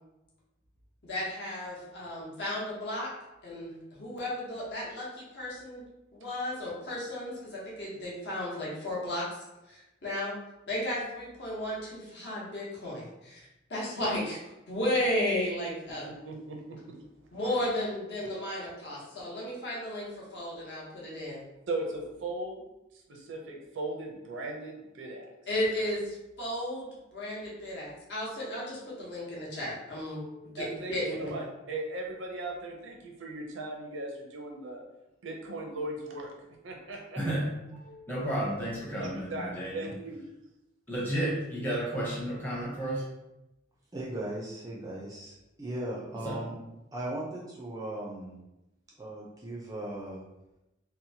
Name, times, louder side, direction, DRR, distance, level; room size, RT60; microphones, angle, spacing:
voice 1, 1.0-3.1 3.4-5.8 6.1-9.2 9.7-10.3 10.7-13.4 13.7-14.4 14.7-16.1 17.3-21.4 25.5-31.4, left 1 dB, 55° left, -6 dB, 0.9 m, -34 dB
voice 2, 16.0-17.0 21.7-22.6 23.1-25.3 30.6-30.9 31.2-34.8 35.2-36.3 36.6-37.2 39.0-40.2, right 2 dB, 75° right, 0 dB, 0.5 m, -38 dB
voice 3, 30.2-30.5 37.2-37.5 37.7-39.9 40.9-43.0 46.2-46.4, right 1 dB, 10° left, -6 dB, 0.7 m, -32 dB
voice 4, 43.9-46.5 46.9-48.4 49.0-50.2, right 1 dB, 20° right, -4 dB, 0.4 m, -38 dB
2.8 x 2.1 x 2.7 m, 0.95 s
head